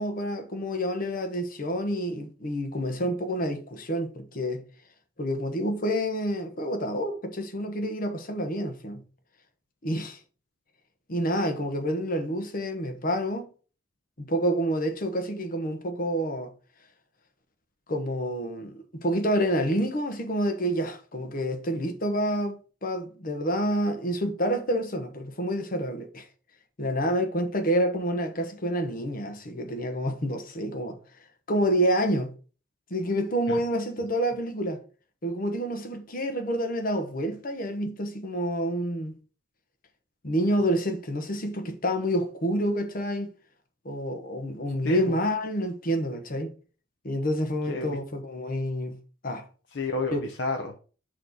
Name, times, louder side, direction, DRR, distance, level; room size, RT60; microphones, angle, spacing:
voice 1, 0.0-4.6 5.2-9.0 9.8-10.2 11.1-13.5 14.2-16.5 17.9-26.3 26.8-31.0 31.5-32.3 32.9-34.8 35.2-39.2 40.2-43.3 43.8-46.5 47.0-49.0 49.2-49.4 50.1-50.2, equal, 50° left, 1.1 m, -28 dB
voice 2, 44.8-45.2 47.7-48.0 49.7-50.8, left 2 dB, 80° left, 0.8 m, -29 dB
6.3 x 3.2 x 5.2 m
head